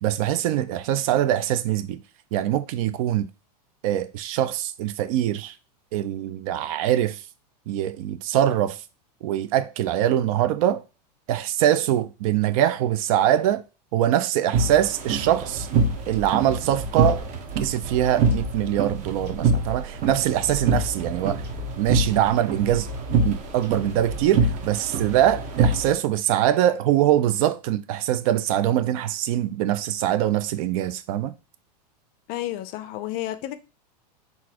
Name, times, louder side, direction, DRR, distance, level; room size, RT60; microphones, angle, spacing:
voice 1, 0.0-2.0 2.3-3.3 3.8-5.5 5.9-7.2 7.7-8.8 9.2-10.8 11.3-13.6 13.9-15.7 16.1-17.2 17.6-21.4 21.8-22.9 23.2-31.3, right 11 dB, 60° right, 0.4 m, -23 dB
sound 1, 14.5-25.9, right 3 dB, 35° right, 0.8 m, -25 dB
sound 2, 16.1-24.8, right 3 dB, 85° right, 1.8 m, -39 dB
voice 2, 32.3-33.6, left 14 dB, 45° left, 0.4 m, -31 dB
3.9 x 2.5 x 2.9 m
hypercardioid pair, 120°, 21 cm